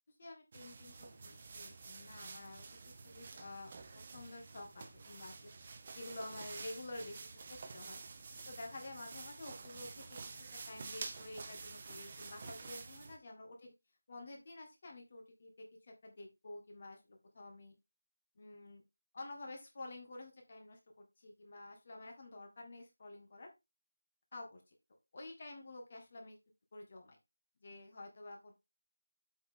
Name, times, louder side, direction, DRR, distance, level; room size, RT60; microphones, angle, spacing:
voice 1, 0.2-8.0 8.4-13.7 14.1-17.7 18.4-18.8 19.1-23.5 24.3-24.6 25.1-26.4 26.7-27.2 27.6-28.5, left 2 dB, 35° left, 2 dB, 2.7 m, -50 dB
sound 1, 0.5-13.2, right 4 dB, 25° right, 1.0 m, -49 dB
7.9 x 5.7 x 3.7 m, 0.23 s
figure-of-eight pair, 170°, 0 cm